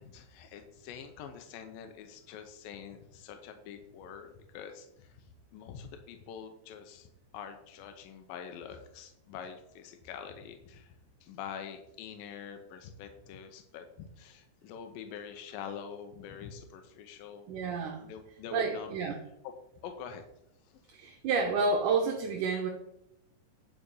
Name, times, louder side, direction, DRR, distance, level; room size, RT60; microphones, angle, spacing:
voice 1, 0.0-5.2 5.5-7.1 7.3-10.9 11.2-17.5 18.0-19.1 19.8-20.2, left 7 dB, 85° left, 6 dB, 2.5 m, -45 dB
voice 2, 17.5-18.1 18.5-19.2 20.9-22.7, right 4 dB, 70° right, 2 dB, 2.3 m, -30 dB
9.8 x 5.2 x 5.5 m, 0.82 s
omnidirectional pair, 4.0 m